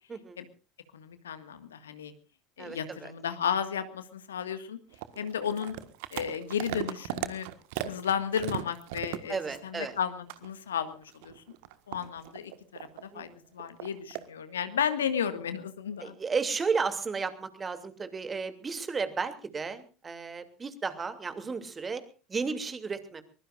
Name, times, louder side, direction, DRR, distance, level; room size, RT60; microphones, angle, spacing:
voice 1, 0.9-2.1 2.6-4.8 5.2-5.7 6.1-7.5 7.8-11.4 11.9-16.2, left 8 dB, 80° left, 10 dB, 1.8 m, -33 dB
voice 2, 2.6-3.1 9.3-9.9 13.1-13.4 16.0-22.0 22.3-23.2, right 5 dB, 25° right, 10 dB, 2.8 m, -33 dB
sound 1, 4.9-10.0 10.3-10.5 11.0-13.1 13.6-14.3, right 14 dB, 65° right, 1.5 m, -38 dB
23.5 x 21.0 x 2.5 m, 0.36 s
figure-of-eight pair, 70°, 0 cm